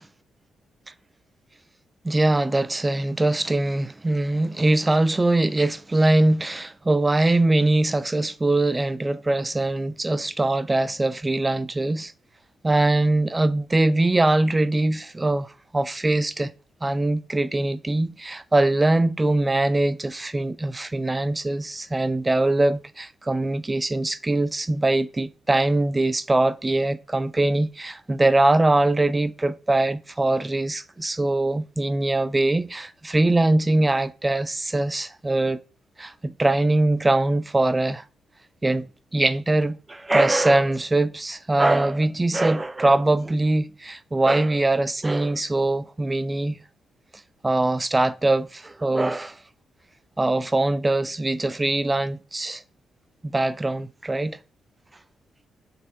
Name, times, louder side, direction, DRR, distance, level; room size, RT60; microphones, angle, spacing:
voice 1, 2.0-12.1 12.6-16.5 16.8-35.6 36.0-38.0 38.6-46.6 47.4-49.4 50.2-52.6 53.2-54.4, right 2 dB, 15° right, 0.4 m, -22 dB
6.2 x 4.3 x 4.3 m
cardioid pair, 110°, 0 cm